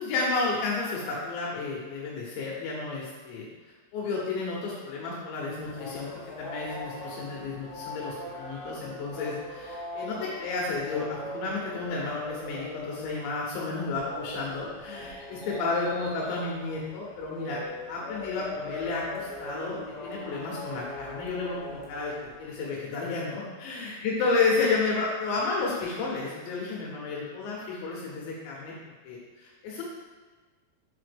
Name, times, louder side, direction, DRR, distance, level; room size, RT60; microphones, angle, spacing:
voice 1, 0.0-3.5 3.9-6.1 6.4-17.6 17.9-22.1 22.4-28.8 29.0-29.8, left 3 dB, 80° left, -4 dB, 3.2 m, -31 dB
sound 1, 5.6-22.6, left 2 dB, 65° left, 2.9 m, -40 dB
7.2 x 4.2 x 3.4 m, 1.3 s
omnidirectional pair, 5.2 m